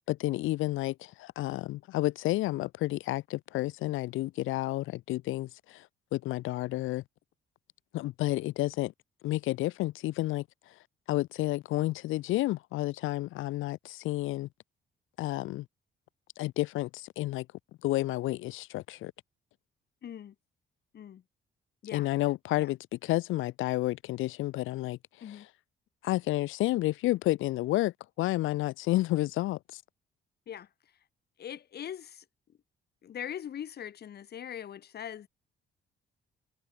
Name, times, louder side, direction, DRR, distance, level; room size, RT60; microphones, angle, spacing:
voice 1, 0.1-5.8 6.1-7.0 7.9-8.9 9.2-10.4 11.1-14.5 15.2-15.7 16.4-17.5 17.8-19.1 21.9-25.0 26.0-29.8, left 17 dB, 85° left, 0.6 m, -30 dB
voice 2, 20.0-20.3 20.9-21.2 21.8-22.1 22.6-22.7 25.2-25.5 30.5-30.7 31.4-32.2 33.0-35.3, left 9 dB, 55° left, 1.1 m, -41 dB
cardioid pair, 90°, 20 cm